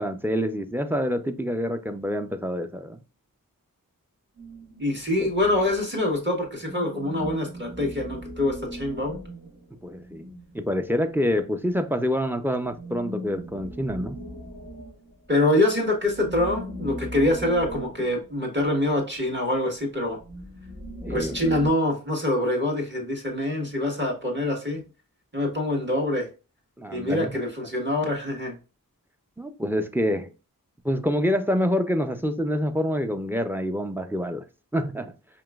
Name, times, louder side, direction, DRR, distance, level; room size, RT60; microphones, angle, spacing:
voice 1, 0.0-3.0 5.2-5.3 9.8-10.3 10.5-14.2 21.0-21.4 26.8-27.4 29.4-30.3 30.8-34.4 34.7-35.1, equal, 5° right, 0.4 m, -26 dB
sound 1, 4.4-6.2 6.6-11.0 12.7-15.4 15.7-19.0 20.0-21.7, equal, 75° right, 1.9 m, -39 dB
voice 2, 4.8-9.2 15.3-20.2 21.1-24.8 25.3-26.3 26.9-28.6, left 1 dB, 30° right, 1.5 m, -25 dB
5.0 x 2.9 x 2.3 m
wide cardioid pair, 40°, 35 cm